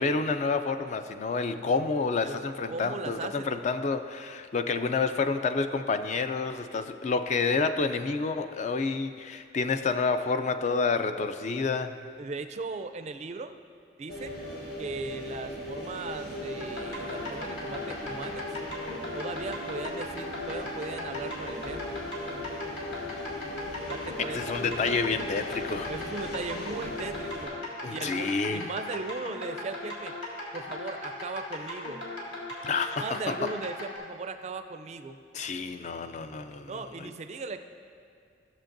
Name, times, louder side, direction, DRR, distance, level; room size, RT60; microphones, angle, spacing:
voice 1, 0.0-12.0 24.3-25.9 27.8-28.7 32.6-33.3 35.3-37.1, left 4 dB, 40° left, 9 dB, 0.3 m, -29 dB
voice 2, 2.7-3.5 12.2-13.6 14.0-14.4 14.8-18.5 19.1-22.0 23.9-24.6 25.9-27.5 27.9-30.1 30.5-32.0 33.0-35.2 36.7-37.6, right 3 dB, 35° right, 9 dB, 0.4 m, -38 dB
sound 1, 14.1-27.5, left 1 dB, 55° left, 1.7 m, -38 dB
sound 2, 16.6-34.0, left 2 dB, 75° left, 2.0 m, -38 dB
15.0 x 6.5 x 2.6 m, 2.3 s
head